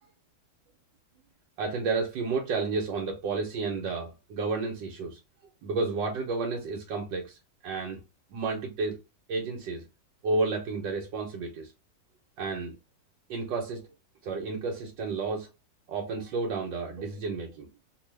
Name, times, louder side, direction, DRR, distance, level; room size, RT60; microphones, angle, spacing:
voice 1, 1.6-5.2 5.6-7.4 7.6-8.0 8.3-9.0 9.3-9.8 10.2-11.7 12.4-12.7 13.3-13.8 14.2-15.5 15.9-17.7, right 4 dB, 85° right, 1.4 m, -31 dB
2.9 x 2.5 x 3.1 m
omnidirectional pair, 1.9 m